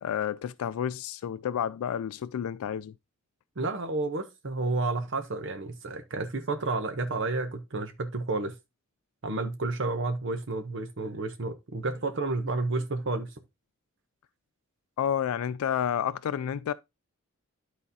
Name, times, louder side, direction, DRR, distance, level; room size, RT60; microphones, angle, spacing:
voice 1, 0.0-2.9 15.0-16.7, left 9 dB, 90° left, 0.3 m, -30 dB
voice 2, 3.6-8.5 9.2-13.3, right 3 dB, 55° right, 0.8 m, -31 dB
12.0 x 4.1 x 2.7 m
head